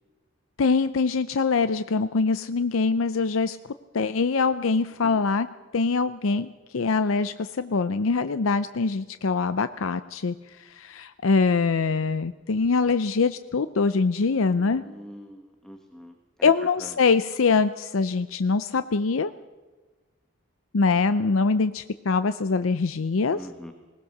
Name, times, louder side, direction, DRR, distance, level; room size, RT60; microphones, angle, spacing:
voice 1, 0.6-3.6 3.9-5.5 5.7-14.8 16.4-19.3 20.7-23.5, left 4 dB, 80° left, 12 dB, 0.6 m, -23 dB
voice 2, 14.4-16.5 16.8-16.9 23.3-23.7, equal, 5° left, 5 dB, 1.1 m, -44 dB
20.5 x 19.5 x 6.6 m, 1.3 s
head